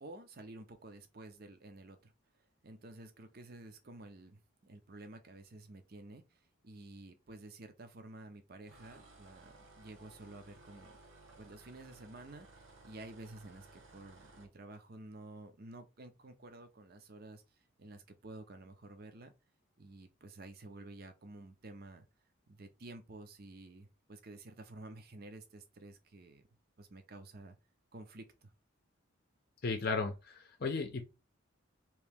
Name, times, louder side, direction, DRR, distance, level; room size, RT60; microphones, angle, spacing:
voice 1, 0.0-2.1 2.6-11.0 11.4-17.4 17.8-19.3 19.8-22.0 22.5-26.5 26.8-27.6 27.9-28.5, right 2 dB, 50° right, 0.6 m, -51 dB
sound 1, 8.7-14.5, right 2 dB, 70° right, 0.9 m, -58 dB
voice 2, 29.6-31.0, left 4 dB, 50° left, 0.6 m, -35 dB
3.0 x 2.8 x 3.4 m
head